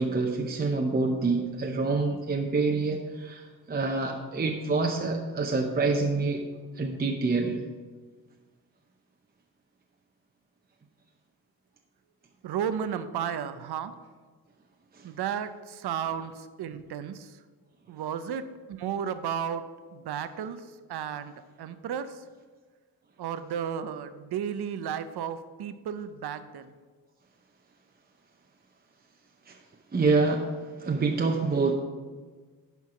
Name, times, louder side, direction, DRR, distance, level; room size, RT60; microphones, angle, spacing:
voice 1, 0.0-3.4 3.7-6.4 6.8-7.6 29.5-29.6 29.9-30.5 30.8-31.7, right 3 dB, 25° right, 2 dB, 0.7 m, -26 dB
voice 2, 12.4-13.9 15.0-16.3 16.6-17.3 17.9-18.5 18.8-19.6 19.9-20.6 20.9-21.3 21.6-22.1 23.2-26.7, right 8 dB, 85° right, 11 dB, 0.6 m, -33 dB
11.0 x 4.6 x 5.8 m, 1.4 s
wide cardioid pair, 135°, 38 cm